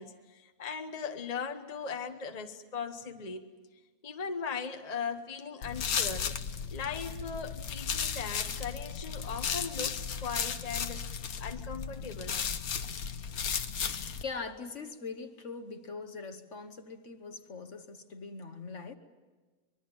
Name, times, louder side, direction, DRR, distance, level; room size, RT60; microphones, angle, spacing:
voice 1, 0.0-3.5 4.0-6.3 6.7-11.1 11.4-12.4, left 5 dB, 30° left, 1.1 m, -38 dB
sound 1, 5.6-14.2, left 7 dB, 75° left, 1.6 m, -35 dB
voice 2, 14.2-18.9, left 4 dB, 55° left, 1.6 m, -42 dB
24.5 x 22.0 x 8.9 m
omnidirectional pair, 1.5 m